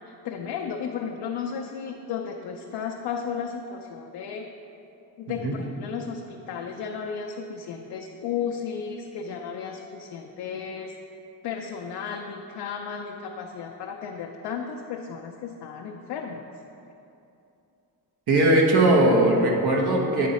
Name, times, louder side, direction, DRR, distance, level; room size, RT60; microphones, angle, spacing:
voice 1, 0.1-4.5 5.2-10.9 11.4-16.5, left 6 dB, 85° left, 1 dB, 0.5 m, -34 dB
voice 2, 18.3-20.3, right 1 dB, 75° right, -1 dB, 1.2 m, -19 dB
9.3 x 3.9 x 4.1 m, 2.8 s
cardioid pair, 105°, 39 cm